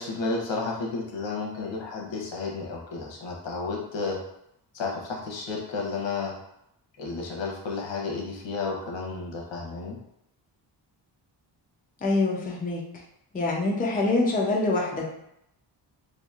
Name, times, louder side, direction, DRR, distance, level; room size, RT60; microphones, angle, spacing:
voice 1, 0.0-4.2 4.7-6.3 7.0-10.0, left 4 dB, 80° left, -1 dB, 0.9 m, -32 dB
voice 2, 12.0-12.9 13.3-15.0, left 2 dB, 20° left, -2 dB, 0.4 m, -25 dB
2.9 x 2.5 x 2.3 m, 0.79 s
wide cardioid pair, 145°, 44 cm